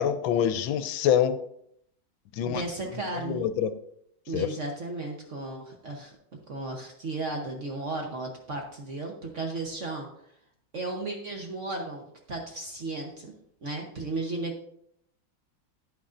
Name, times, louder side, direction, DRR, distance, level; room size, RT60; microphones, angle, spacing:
voice 1, 0.0-1.4 2.3-2.6 3.3-3.7 4.3-4.5, left 9 dB, 80° left, 11 dB, 1.3 m, -25 dB
voice 2, 2.4-3.4 4.3-6.1 6.5-10.1 10.7-13.3 13.6-14.7, right 2 dB, 45° right, 1 dB, 1.0 m, -34 dB
10.0 x 9.3 x 2.5 m, 0.72 s
omnidirectional pair, 2.2 m